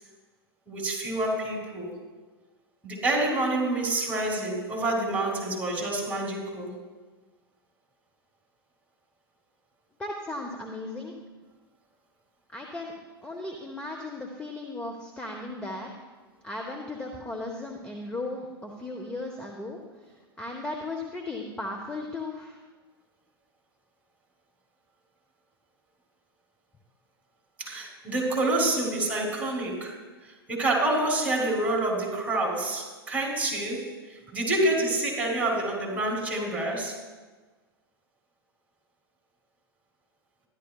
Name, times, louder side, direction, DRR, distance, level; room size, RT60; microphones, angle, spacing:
voice 1, 0.7-1.9 2.8-6.7 27.6-30.0 30.2-37.0, right 2 dB, 10° right, -1 dB, 3.2 m, -27 dB
voice 2, 10.0-11.1 12.5-12.9 13.2-16.0 16.4-19.8 20.4-22.6, left 2 dB, 5° left, 1 dB, 1.0 m, -36 dB
13.5 x 11.0 x 2.4 m, 1.3 s
figure-of-eight pair, 95°, 13 cm